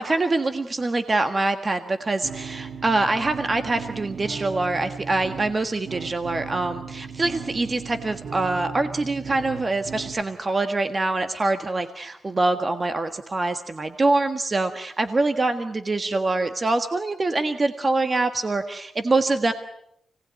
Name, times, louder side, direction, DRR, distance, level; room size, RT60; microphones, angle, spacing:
voice 1, 0.0-19.5, right 2 dB, 30° right, 8 dB, 1.5 m, -24 dB
sound 1, 2.2-10.2, right 6 dB, 70° right, 1.1 m, -37 dB
29.0 x 19.5 x 9.5 m, 0.75 s
wide cardioid pair, 120°, 0 cm